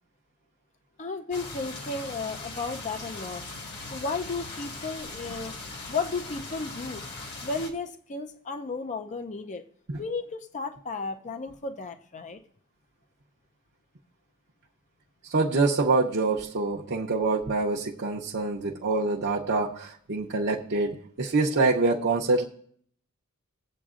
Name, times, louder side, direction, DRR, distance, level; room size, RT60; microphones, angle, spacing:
voice 1, 1.0-3.5 3.9-5.5 5.9-7.0 7.4-9.6 10.0-12.4, left 4 dB, 30° left, 7 dB, 0.5 m, -34 dB
sound 1, 1.3-7.7, left 3 dB, 50° left, 1.6 m, -40 dB
voice 2, 15.3-22.4, right 3 dB, 50° right, -3 dB, 0.7 m, -25 dB
22.0 x 7.9 x 2.5 m, 0.63 s
head